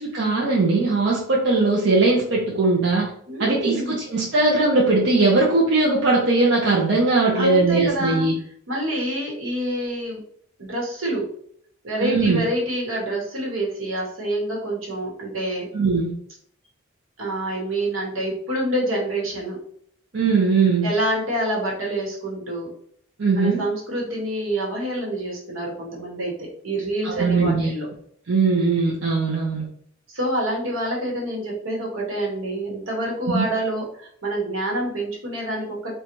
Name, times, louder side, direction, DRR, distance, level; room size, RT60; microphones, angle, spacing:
voice 1, 0.0-3.1 3.4-8.3 12.0-12.4 15.7-16.1 20.1-20.9 23.2-23.6 27.0-27.7 28.3-29.7 33.3-33.4, right 3 dB, 55° right, -3 dB, 0.5 m, -20 dB
voice 2, 3.3-3.9 7.3-8.3 8.7-10.2 10.6-11.3 11.8-15.7 17.2-19.6 20.8-22.7 23.3-27.9 30.1-35.9, right 1 dB, 75° right, -2 dB, 1.1 m, -27 dB
3.9 x 2.2 x 2.9 m, 0.65 s
head